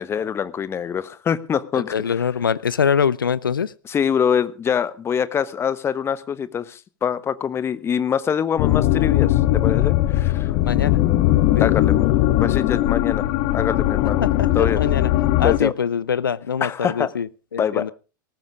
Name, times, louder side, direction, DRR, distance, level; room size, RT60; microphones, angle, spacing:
voice 1, 0.0-1.9 3.8-10.5 11.6-12.1 12.4-14.2 14.5-14.8 15.4-15.7 16.6-17.1 17.6-17.9, left 8 dB, 20° left, 15 dB, 1.1 m, -24 dB
voice 2, 1.7-3.7 10.6-11.0 11.5-11.7 14.2-15.1 15.4-17.9, left 7 dB, 75° left, 20 dB, 0.6 m, -23 dB
sound 1, 8.6-15.6, left 15 dB, 45° left, 1.3 m, -19 dB
18.5 x 15.0 x 3.6 m, 0.35 s
figure-of-eight pair, 95°, 11 cm